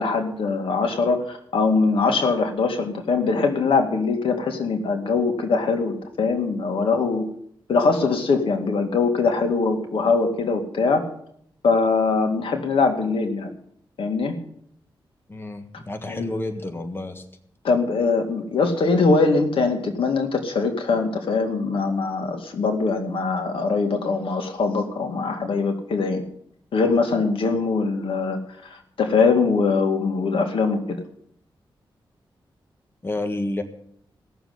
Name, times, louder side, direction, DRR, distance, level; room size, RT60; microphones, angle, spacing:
voice 1, 0.0-7.3 7.7-11.0 11.6-13.5 14.0-14.3 16.1-16.3 17.6-26.2 26.7-28.4 28.7-31.0, left 4 dB, 85° left, 4 dB, 2.2 m, -22 dB
voice 2, 15.3-17.2 33.0-33.6, left 2 dB, 25° left, 5 dB, 1.6 m, -30 dB
17.0 x 7.1 x 9.5 m, 0.68 s
wide cardioid pair, 105°, 9 cm